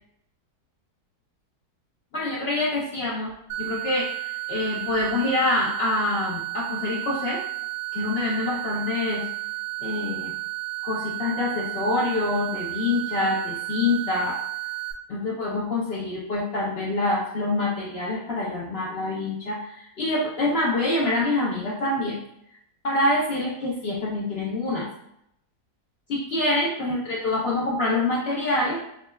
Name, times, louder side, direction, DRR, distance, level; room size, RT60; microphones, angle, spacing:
voice 1, 2.1-3.3 3.6-7.4 7.9-9.2 9.8-10.3 10.8-14.4 15.1-22.2 22.8-24.9 26.1-28.8, left 2 dB, 65° left, -4 dB, 0.6 m, -26 dB
sound 1, 3.5-14.9, right 19 dB, 90° right, 1.2 m, -32 dB
6.2 x 2.1 x 2.2 m, 0.77 s
omnidirectional pair, 1.7 m